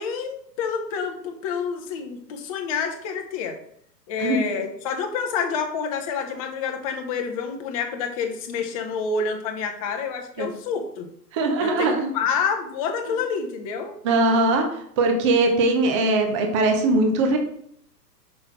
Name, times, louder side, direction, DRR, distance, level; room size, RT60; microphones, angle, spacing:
voice 1, 0.0-3.5 4.1-11.1 11.6-13.9, left 6 dB, 20° left, 4 dB, 0.8 m, -28 dB
voice 2, 11.3-12.1 14.0-14.7 15.0-17.4, right 2 dB, 20° right, 4 dB, 0.7 m, -20 dB
6.6 x 5.4 x 4.4 m, 0.69 s
figure-of-eight pair, 120°, 50 cm